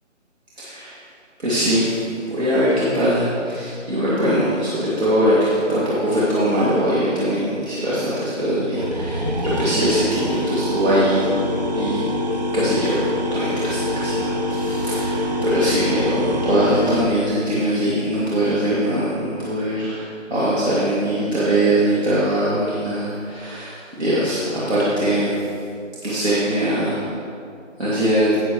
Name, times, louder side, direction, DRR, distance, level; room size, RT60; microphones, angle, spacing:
voice 1, 0.6-1.0 1.4-11.3 11.7-12.1 12.5-25.5 26.0-27.1 27.8-28.3, right 1 dB, 55° right, -9 dB, 2.6 m, -21 dB
sound 1, 8.8-17.0, left 1 dB, 35° right, 0.6 m, -24 dB
13.5 x 8.9 x 3.1 m, 2.5 s
figure-of-eight pair, 160°, 39 cm